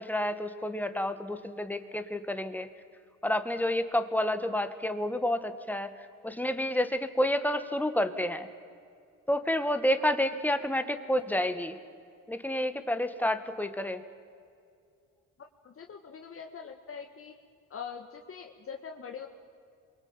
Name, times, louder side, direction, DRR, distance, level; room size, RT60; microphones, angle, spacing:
voice 1, 0.0-2.7 3.2-5.9 6.2-8.5 9.3-11.8 12.3-14.0, left 1 dB, 5° left, 9 dB, 2.0 m, -29 dB
voice 2, 15.6-17.3 17.7-19.3, left 6 dB, 45° left, 4 dB, 1.8 m, -43 dB
27.0 x 24.0 x 9.0 m, 2.3 s
cardioid pair, 90°, 30 cm